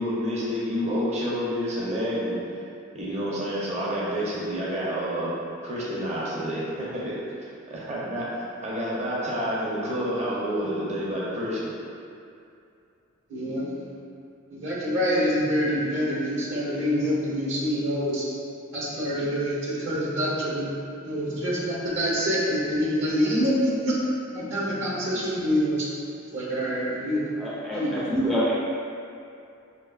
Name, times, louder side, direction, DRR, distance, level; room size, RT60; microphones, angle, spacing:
voice 1, 0.0-2.4 2.9-5.3 5.6-7.1 7.7-11.6, equal, 35° right, -7 dB, 0.6 m, -29 dB
voice 2, 13.3-13.7 14.5-18.2 18.7-20.7 21.0-24.0 24.3-25.9 26.3-27.3 27.7-28.2, equal, 65° right, -6 dB, 1.0 m, -26 dB
voice 3, 27.4-28.5, equal, ahead, -7 dB, 0.3 m, -26 dB
4.8 x 2.7 x 2.3 m, 2.5 s
head